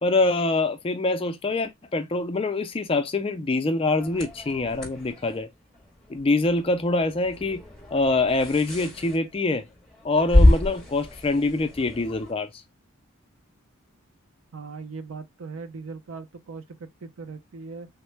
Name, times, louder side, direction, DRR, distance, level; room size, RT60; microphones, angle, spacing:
voice 1, 0.0-5.5 6.1-7.6 7.9-9.7 10.0-12.6, left 2 dB, 25° left, 0.3 m, -25 dB
sound 1, 4.0-12.3, left 1 dB, 5° left, 0.9 m, -27 dB
voice 2, 14.5-17.9, right 4 dB, 65° right, 0.5 m, -39 dB
3.5 x 2.1 x 3.1 m
head